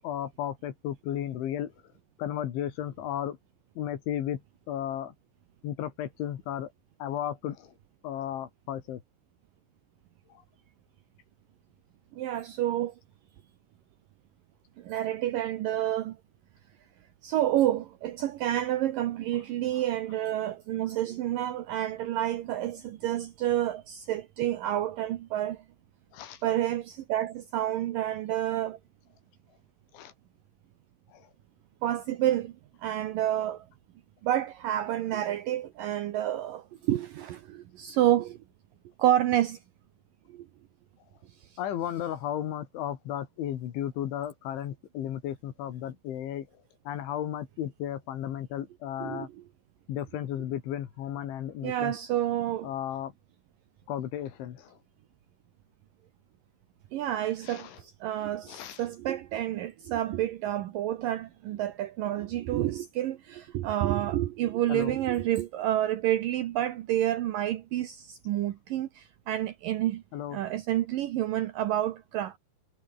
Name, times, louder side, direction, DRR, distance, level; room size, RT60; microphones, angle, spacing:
voice 1, 0.0-1.7 2.2-3.4 3.8-4.4 4.7-5.1 5.6-6.7 7.0-7.7 8.0-9.0 26.1-26.4 29.9-30.1 31.1-31.3 41.6-46.5 46.9-49.3 49.9-52.0 52.6-53.1 53.9-54.8 57.5-57.8 58.5-58.9 64.7-65.0 70.1-70.4, left 11 dB, 75° left, 4.5 m, -34 dB
voice 2, 12.1-12.9 14.8-16.2 17.2-25.6 26.4-28.8 31.8-32.5 32.8-33.7 34.2-38.4 39.0-39.6 40.3-40.5 49.0-49.3 51.6-52.7 56.9-70.0 70.3-72.4, right 12 dB, 80° right, 2.0 m, -29 dB
omnidirectional pair, 5.5 m